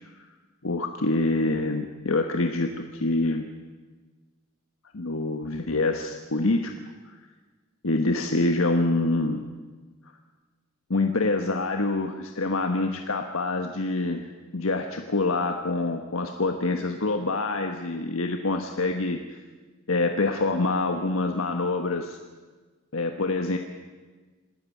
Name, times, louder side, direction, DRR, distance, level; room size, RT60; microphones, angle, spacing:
voice 1, 0.6-3.5 4.9-6.7 7.0-7.2 7.8-9.4 10.9-19.4 19.9-22.2 22.9-23.6, left 2 dB, 80° left, 5 dB, 1.3 m, -26 dB
26.5 x 13.0 x 9.3 m, 1.3 s
head